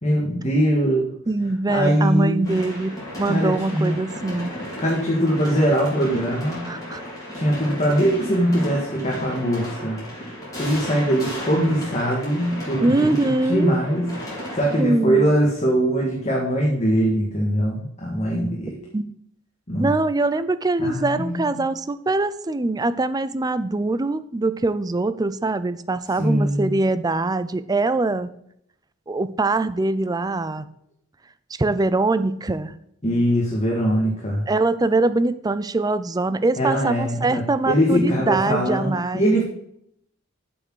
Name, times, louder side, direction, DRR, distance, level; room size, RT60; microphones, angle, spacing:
voice 1, 0.0-1.1 1.7-2.5 3.3-4.0 4.8-6.6 7.3-10.0 10.6-18.8 19.7-19.9 20.8-21.5 26.2-26.8 33.0-34.5 36.6-39.4, equal, 30° left, -2 dB, 1.8 m, -22 dB
voice 2, 1.3-4.5 6.6-7.0 12.8-13.8 14.8-15.3 18.9-19.1 19.8-28.3 29.1-30.7 31.6-32.7 34.5-39.3, right 2 dB, 20° right, 14 dB, 0.4 m, -23 dB
sound 1, 2.4-14.8, equal, 15° left, 4.2 m, -34 dB
8.0 x 6.2 x 6.2 m, 0.74 s
head